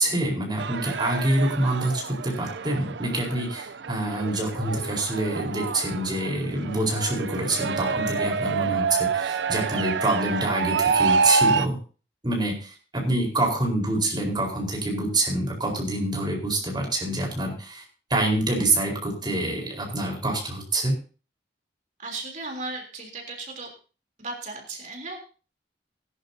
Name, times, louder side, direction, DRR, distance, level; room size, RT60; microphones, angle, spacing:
voice 1, 0.0-11.8 12.2-17.8 18.1-20.9, right 1 dB, 25° right, 0 dB, 4.4 m, -26 dB
sound 1, 0.6-11.7, right 5 dB, 80° right, 0.6 m, -27 dB
voice 2, 22.0-23.7 24.2-25.2, right 3 dB, 45° right, 1 dB, 3.4 m, -36 dB
19.5 x 11.0 x 2.8 m, 0.37 s
head